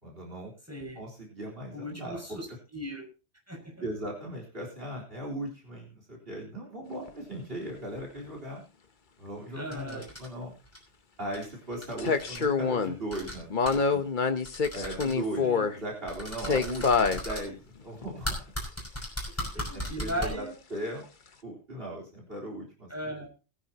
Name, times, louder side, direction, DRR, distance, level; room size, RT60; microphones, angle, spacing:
voice 1, 0.0-0.5 1.0-2.2 3.8-8.6 9.2-10.5 11.2-14.1 14.7-15.5 15.7-18.5 19.0-19.1 19.5-20.4 20.7-21.1 21.4-23.1, right 1 dB, 60° right, 0 dB, 4.1 m, -38 dB
voice 2, 0.7-1.0 1.7-2.5 2.7-3.1 3.5-3.8 9.5-10.1 15.4-15.8 19.2-20.5 22.9-23.3, equal, 15° right, -1 dB, 5.7 m, -37 dB
sound 1, 7.1-7.2 12.0-13.0 13.5-15.8 16.4-17.2 18.0-18.1, left 5 dB, 50° left, 1.2 m, -26 dB
sound 2, 9.7-10.3 10.6-10.8 11.3-11.5 11.7-12.4 13.1-13.4 13.6-13.8 14.4-15.1 16.1-17.4 18.2-20.3, equal, 15° left, 5.9 m, -36 dB
21.0 x 10.0 x 2.9 m, 0.33 s
omnidirectional pair, 1.1 m